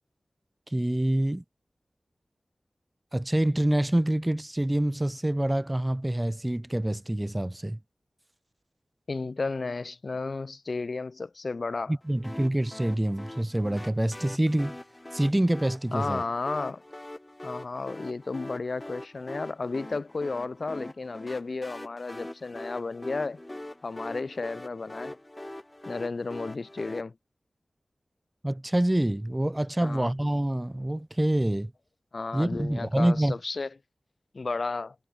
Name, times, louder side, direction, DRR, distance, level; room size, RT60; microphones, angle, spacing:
voice 1, 0.7-1.4 3.1-7.8 11.9-14.8 15.1-16.2 28.4-31.7 32.3-33.3, right 1 dB, 15° right, 1.8 m, -26 dB
voice 2, 9.1-11.9 15.9-16.8 17.4-23.4 23.8-25.2 25.8-27.1 29.8-30.1 32.1-33.7 34.3-34.9, left 3 dB, 60° left, 3.3 m, -33 dB
sound 1, 12.2-27.0, left 1 dB, 20° left, 7.1 m, -43 dB
wide cardioid pair, 70°, 0 cm